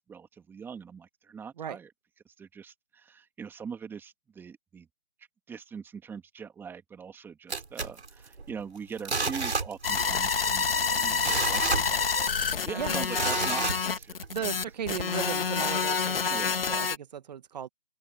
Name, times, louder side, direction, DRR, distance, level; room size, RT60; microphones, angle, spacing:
voice 1, 0.0-1.9 2.2-4.9 5.5-14.1 16.3-16.6, right 6 dB, 5° right, 2.6 m, -42 dB
sound 1, 7.5-8.6 9.0-10.2 10.5-10.6 11.0-12.5 13.1-14.3 14.8-14.9, right 4 dB, 65° right, 6.8 m, -31 dB
sound 2, 9.8-17.0, left 5 dB, 55° left, 2.4 m, -28 dB
voice 2, 14.3-17.7, right 8 dB, 35° right, 2.0 m, -36 dB
open air
figure-of-eight pair, 145°, 35 cm